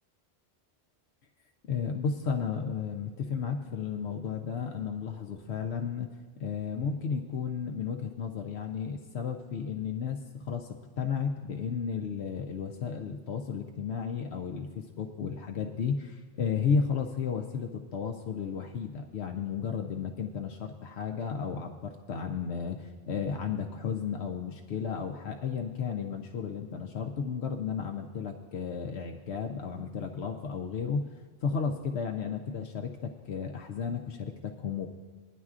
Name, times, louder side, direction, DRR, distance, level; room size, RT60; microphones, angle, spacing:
voice 1, 1.7-6.1 6.4-10.7 11.0-31.0 31.4-32.9 33.3-34.9, left 6 dB, 75° left, 3 dB, 1.0 m, -33 dB
21.5 x 10.0 x 2.4 m, 1.5 s
omnidirectional pair, 1.1 m